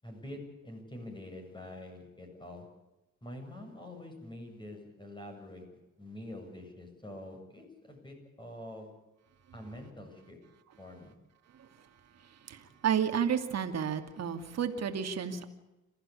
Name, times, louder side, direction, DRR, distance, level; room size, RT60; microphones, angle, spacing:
voice 1, 0.0-2.7 3.2-5.6 6.0-8.9 9.5-10.4 10.8-11.1, left 1 dB, 15° left, 2 dB, 7.7 m, -46 dB
voice 2, 12.2-15.4, right 8 dB, 60° right, 6 dB, 2.7 m, -32 dB
27.0 x 15.0 x 8.6 m, 1.0 s
cardioid pair, 90°, 30 cm